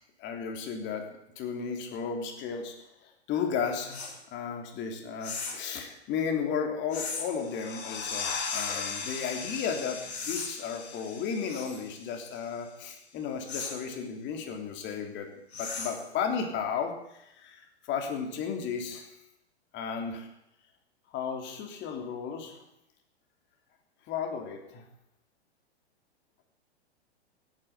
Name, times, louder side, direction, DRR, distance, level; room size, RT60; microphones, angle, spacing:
voice 1, 0.2-1.1 1.3-2.7 3.3-15.3 15.5-16.9 17.3-19.0 19.7-20.3 21.1-22.6 24.1-24.8, left 6 dB, 35° left, 4 dB, 3.4 m, -34 dB
sound 1, 3.9-4.2 5.2-5.7 6.9-7.3 8.4-8.8 10.1-10.5 11.5-11.8 13.5-13.8 15.5-16.1, left 5 dB, 70° left, 4.3 m, -37 dB
sound 2, 7.3-12.7, left 5 dB, 50° left, 4.2 m, -38 dB
16.0 x 9.8 x 8.2 m, 0.81 s
figure-of-eight pair, 105°, 33 cm